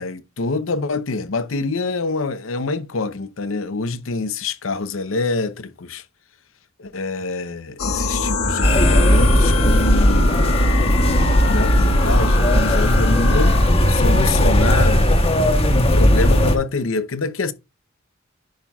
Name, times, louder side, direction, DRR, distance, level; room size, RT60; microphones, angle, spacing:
voice 1, 0.0-6.0 6.8-10.5 11.4-13.6 13.9-15.1 15.7-17.5, left 3 dB, 70° left, 0.7 m, -25 dB
sound 1, 7.8-15.2, left 2 dB, 90° left, 1.4 m, -23 dB
sound 2, 8.6-16.6, equal, 30° left, 1.1 m, -16 dB
10.5 x 5.7 x 2.3 m
head